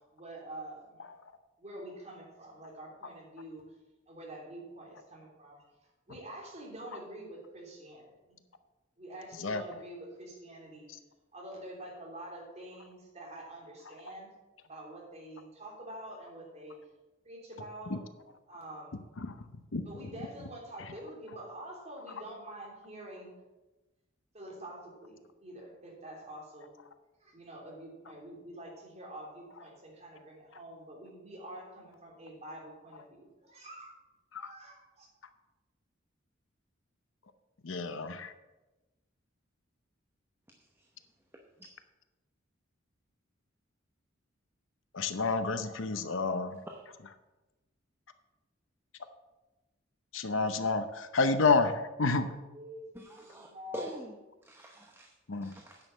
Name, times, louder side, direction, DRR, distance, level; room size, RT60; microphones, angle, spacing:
voice 1, 0.1-1.0 1.6-3.6 4.1-5.7 6.1-8.4 9.0-10.9 11.3-14.3 14.6-16.8 17.2-18.0 18.5-19.0 19.8-23.3 24.3-26.7 27.2-34.0 34.4-35.1 52.1-52.2 52.5-52.8 53.2-54.0, right 1 dB, 35° right, -2 dB, 3.3 m, -46 dB
voice 2, 37.6-38.3 44.9-46.5 50.1-51.7 52.0-52.3 55.3-55.5, left 4 dB, 75° left, 10 dB, 0.8 m, -29 dB
voice 3, 52.9-54.2 54.5-55.1 55.4-55.9, equal, 10° right, 1 dB, 0.9 m, -44 dB
9.7 x 6.4 x 7.2 m, 1.1 s
head